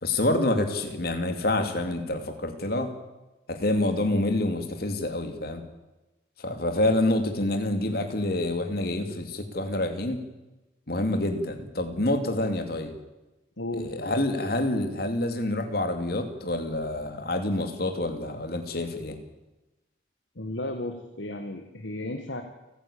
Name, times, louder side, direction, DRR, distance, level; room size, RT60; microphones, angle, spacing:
voice 1, 0.0-2.9 3.5-5.6 6.4-10.2 10.9-12.9 13.7-19.2, left 1 dB, 55° left, 6 dB, 2.7 m, -27 dB
voice 2, 13.6-14.0 20.3-22.4, left 1 dB, 80° left, 6 dB, 1.7 m, -34 dB
29.5 x 10.0 x 8.6 m, 1.0 s
head